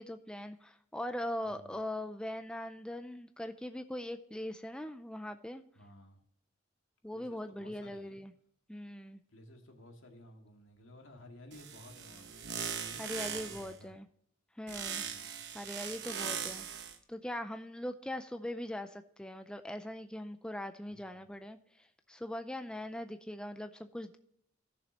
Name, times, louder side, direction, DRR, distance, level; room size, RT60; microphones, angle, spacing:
voice 1, 0.0-5.6 7.0-8.3 8.7-9.2 13.0-14.1 14.6-15.0 15.5-16.7 17.1-24.2, left 1 dB, 5° left, 8 dB, 0.4 m, -41 dB
voice 2, 1.4-1.8 5.8-6.2 7.1-8.2 9.3-14.0 15.0-15.4 20.9-21.3, left 1 dB, 75° left, 3 dB, 2.0 m, -55 dB
sound 1, 11.5-13.8 14.7-17.0, right 7 dB, 60° right, 1.1 m, -40 dB
15.5 x 6.9 x 2.9 m, 0.69 s
head